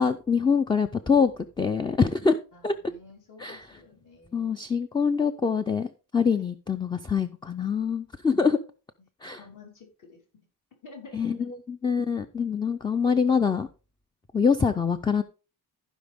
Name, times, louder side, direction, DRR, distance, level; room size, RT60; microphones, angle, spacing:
voice 1, 0.0-1.3 1.6-2.4 2.6-2.7 3.4-3.6 4.3-8.6 9.2-9.4 11.1-11.4 11.8-13.7 14.3-15.2, left 5 dB, 15° left, 10 dB, 0.4 m, -24 dB
voice 2, 2.5-4.6 9.4-10.2 10.8-11.5, left 4 dB, 55° left, 0 dB, 3.8 m, -49 dB
15.0 x 5.1 x 3.5 m, 0.34 s
cardioid pair, 155°, 37 cm